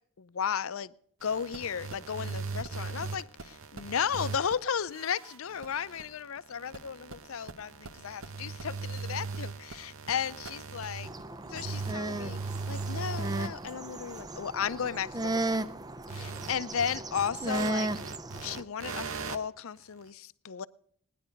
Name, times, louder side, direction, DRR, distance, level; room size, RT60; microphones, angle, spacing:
voice 1, 0.2-0.9 1.2-11.1 11.5-12.4 12.7-15.6 16.1-17.9 18.4-20.7, left 7 dB, 70° left, 17 dB, 0.5 m, -34 dB
sound 1, 1.2-4.6 4.9-11.2 11.5-13.7 14.1-14.2 16.1-19.4, right 4 dB, 70° right, 0.9 m, -39 dB
sound 2, 11.0-18.6, right 2 dB, 20° right, 0.5 m, -35 dB
18.5 x 10.0 x 5.2 m, 0.62 s
head